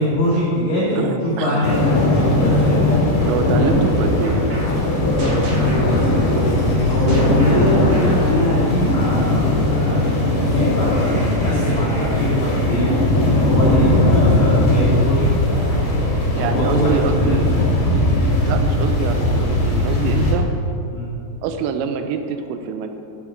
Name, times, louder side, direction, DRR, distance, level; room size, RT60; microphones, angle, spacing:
voice 1, 0.0-2.8 5.7-6.0 6.8-12.8 13.2-17.4 20.9-21.1, equal, 85° left, -7 dB, 1.6 m, -23 dB
voice 2, 0.9-1.7 3.3-4.4 16.3-17.6 18.4-20.5 21.4-22.9, right 7 dB, 85° right, 7 dB, 2.7 m, -25 dB
sound 1, 1.6-20.3, left 1 dB, 70° left, 1.3 m, -18 dB
sound 2, 3.0-9.2, equal, 65° right, 1.8 m, -30 dB
sound 3, 6.5-11.4, left 3 dB, 45° right, 0.7 m, -28 dB
8.3 x 5.1 x 6.0 m, 2.7 s
omnidirectional pair, 5.3 m